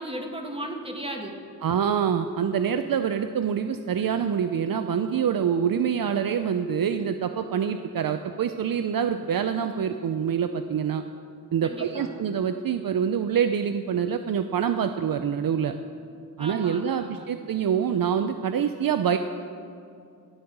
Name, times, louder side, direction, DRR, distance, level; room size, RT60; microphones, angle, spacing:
voice 1, 0.0-1.4 11.6-12.1 16.4-17.4, right 1 dB, 15° right, 2 dB, 1.7 m, -36 dB
voice 2, 1.6-11.0 11.5-15.7 16.4-19.2, right 8 dB, 65° right, 8 dB, 0.5 m, -26 dB
16.0 x 5.5 x 7.9 m, 2.5 s
wide cardioid pair, 70°, 37 cm